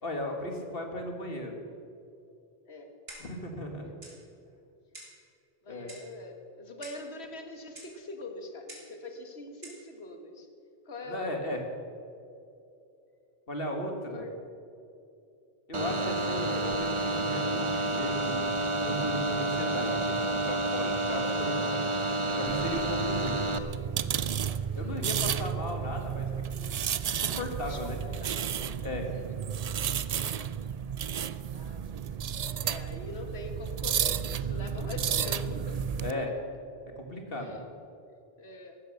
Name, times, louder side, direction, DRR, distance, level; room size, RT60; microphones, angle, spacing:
voice 1, 0.0-1.6 3.2-3.9 5.7-5.9 11.1-11.6 13.5-14.2 15.7-20.2 20.5-21.6 22.3-23.4 24.8-26.3 26.5-26.7 27.2-28.0 28.8-29.1 36.0-36.3 37.0-37.6, left 1 dB, 65° left, 3 dB, 2.2 m, -36 dB
Clock, 3.1-3.4 4.0-4.2 4.9-5.2 5.9-6.2 6.8-7.1 7.8-8.0 8.7-9.0 9.6-9.9, right 1 dB, 70° right, 3.3 m, -47 dB
voice 2, 5.6-10.5 10.9-11.5 14.1-14.4 24.6-25.2 27.7-28.5 29.1-29.3 30.1-30.6 31.5-36.0 37.3-37.6 38.4-38.8, left 2 dB, 85° left, 5 dB, 1.9 m, -44 dB
sound 1, 15.7-23.6, right 2 dB, 30° right, 0.9 m, -29 dB
sound 2, 22.5-36.1, right 8 dB, 50° right, 0.5 m, -32 dB
15.5 x 12.0 x 6.5 m, 2.6 s
omnidirectional pair, 1.1 m